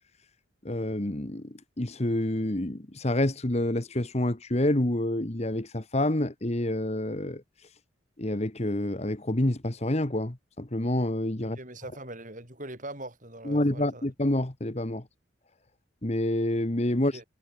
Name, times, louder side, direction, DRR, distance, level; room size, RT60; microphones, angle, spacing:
voice 1, 0.6-7.4 8.2-11.6 13.4-15.0 16.0-17.2, left 1 dB, 35° left, 1.4 m, -28 dB
voice 2, 11.5-14.1 17.1-17.2, right 1 dB, 40° right, 6.1 m, -41 dB
head